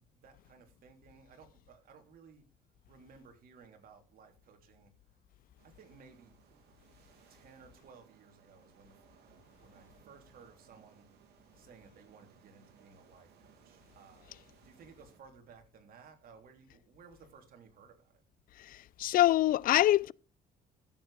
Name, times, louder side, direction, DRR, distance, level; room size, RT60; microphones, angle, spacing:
voice 1, 0.0-2.4 2.9-4.9 5.6-6.3 7.3-9.0 9.6-11.0 11.5-18.2, right 5 dB, 60° right, 3.2 m, -58 dB
sound 1, 5.6-15.2, right 7 dB, 75° right, 2.7 m, -63 dB
voice 2, 18.6-20.1, left 14 dB, 55° left, 0.4 m, -25 dB
14.0 x 7.7 x 3.4 m
cardioid pair, 110°, 17 cm